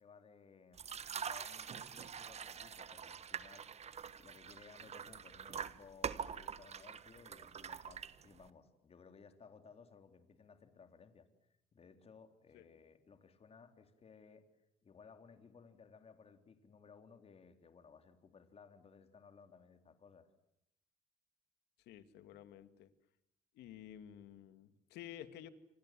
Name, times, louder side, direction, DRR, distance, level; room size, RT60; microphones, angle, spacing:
voice 1, 0.0-3.8 4.2-11.3 11.7-14.5 14.8-20.3, left 5 dB, 35° left, 8 dB, 3.6 m, -60 dB
sound 1, 0.7-8.5, right 7 dB, 40° right, 1.4 m, -45 dB
voice 2, 21.9-22.9 23.5-25.5, left 11 dB, 80° left, 11 dB, 2.4 m, -52 dB
29.5 x 26.0 x 7.7 m, 0.76 s
cardioid pair, 110°, 17 cm